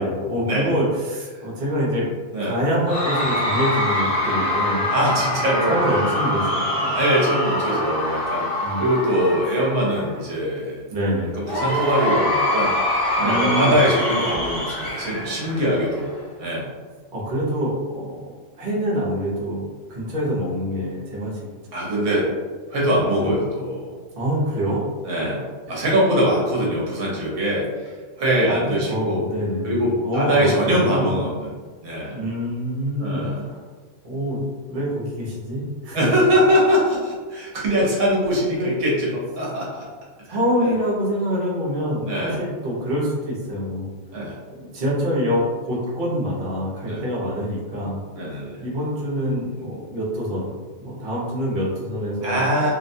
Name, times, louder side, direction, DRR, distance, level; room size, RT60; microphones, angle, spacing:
voice 1, 0.0-2.1 2.4-5.2 5.7-7.1 8.6-8.8 10.9-11.3 13.2-13.8 17.1-19.6 19.9-21.5 23.2-23.3 24.1-24.8 25.7-25.8 28.5-31.2 32.1-33.6 34.0-36.0 38.5-38.7 40.3-43.9 44.5-48.0 48.6-50.5 50.8-52.7, equal, 45° right, -6 dB, 0.7 m, -25 dB
Cheering / Crowd, 2.9-10.2 11.4-16.2, left 1 dB, 50° left, 0.9 m, -24 dB
voice 2, 4.9-5.8 6.9-10.8 11.4-12.7 13.2-16.1 16.4-16.7 21.7-22.3 22.7-23.9 25.0-29.2 29.6-31.5 31.8-32.2 33.0-33.5 35.9-39.8 40.3-40.7 42.0-42.4 44.1-44.4 46.8-47.0 48.1-48.6 52.2-52.7, equal, 65° right, -5 dB, 1.0 m, -22 dB
2.7 x 2.2 x 2.6 m, 1.5 s
omnidirectional pair, 1.5 m